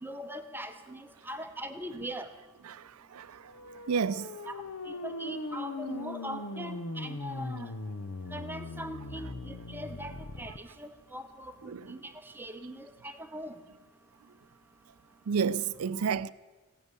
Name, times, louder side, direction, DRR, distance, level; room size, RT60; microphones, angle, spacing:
voice 1, 0.0-2.3 4.5-7.7 8.3-13.5, right 1 dB, 10° right, 0.7 m, -41 dB
sound 1, 3.5-10.6, left 2 dB, 85° left, 0.9 m, -40 dB
voice 2, 3.9-4.3 11.7-11.8 15.3-16.3, right 6 dB, 85° right, 0.5 m, -30 dB
16.0 x 11.0 x 8.2 m
head